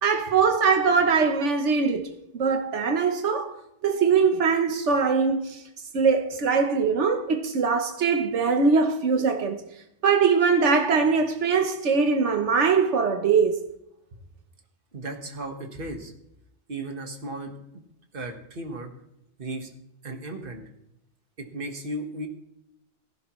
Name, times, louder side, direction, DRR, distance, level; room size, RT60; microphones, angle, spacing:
voice 1, 0.0-3.5 3.8-5.6 5.9-9.6 10.0-13.6, right 5 dB, 85° right, 1.3 m, -22 dB
voice 2, 14.9-16.1 16.7-17.5 18.1-18.9 19.4-19.7 20.0-20.6 21.4-22.3, right 1 dB, 50° right, 1.7 m, -35 dB
16.0 x 14.5 x 3.1 m
omnidirectional pair, 1.2 m